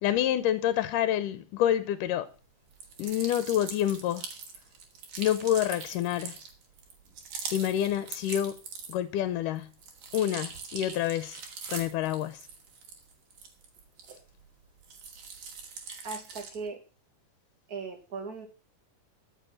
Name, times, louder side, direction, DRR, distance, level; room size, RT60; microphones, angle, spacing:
voice 1, 0.0-2.3 3.0-4.3 5.2-6.4 7.5-8.6 8.9-9.7 10.1-11.4 11.7-12.5, left 11 dB, 85° left, 2.4 m, -28 dB
sound 1, 2.7-9.2 9.6-14.5 14.8-16.7, right 5 dB, 70° right, 3.8 m, -42 dB
voice 2, 16.0-16.8 17.7-18.5, right 4 dB, 30° right, 2.6 m, -38 dB
14.0 x 7.1 x 7.6 m
omnidirectional pair, 3.7 m